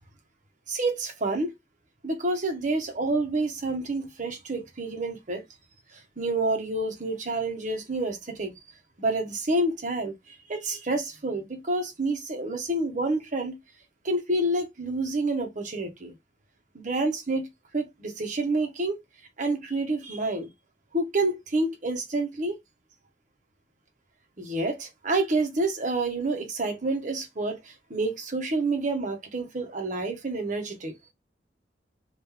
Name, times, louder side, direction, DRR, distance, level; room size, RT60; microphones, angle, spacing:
voice 1, 0.7-1.5 2.0-5.4 5.9-8.5 9.0-13.6 14.0-16.1 16.7-17.5 17.7-19.0 19.4-20.5 20.9-22.6 24.4-30.9, right 2 dB, 45° right, 1.0 m, -28 dB
2.9 x 2.6 x 3.7 m
head